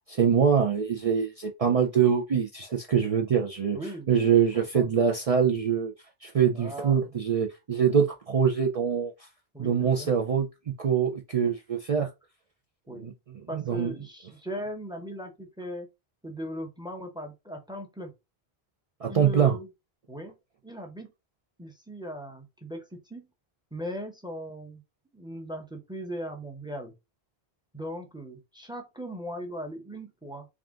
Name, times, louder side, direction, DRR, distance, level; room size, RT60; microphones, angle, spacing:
voice 1, 0.1-3.8 4.1-5.9 6.2-9.1 9.6-10.5 10.8-12.1 13.0-13.1 13.5-13.9 19.0-19.6, right 7 dB, 50° right, 0.4 m, -24 dB
voice 2, 3.7-4.9 6.5-7.0 9.5-10.1 12.9-13.1 13.5-15.9 16.2-18.1 19.0-19.7 20.1-20.4 20.6-21.1 21.6-23.3 23.7-24.8 25.1-26.9 27.7-30.5, equal, 5° right, 0.7 m, -38 dB
3.6 x 2.4 x 3.6 m
omnidirectional pair, 1.1 m